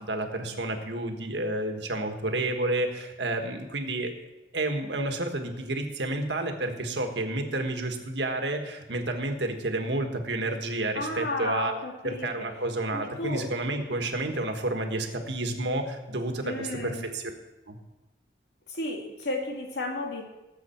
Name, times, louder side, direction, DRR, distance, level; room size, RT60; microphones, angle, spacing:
voice 1, 0.0-4.1 4.5-11.7 12.0-17.3 17.7-17.8, right 2 dB, 85° right, 5 dB, 1.6 m, -30 dB
voice 2, 10.9-12.5 12.9-13.5 16.4-17.1 18.7-20.3, left 2 dB, 85° left, 1 dB, 2.2 m, -33 dB
18.5 x 7.8 x 4.5 m, 1.0 s
head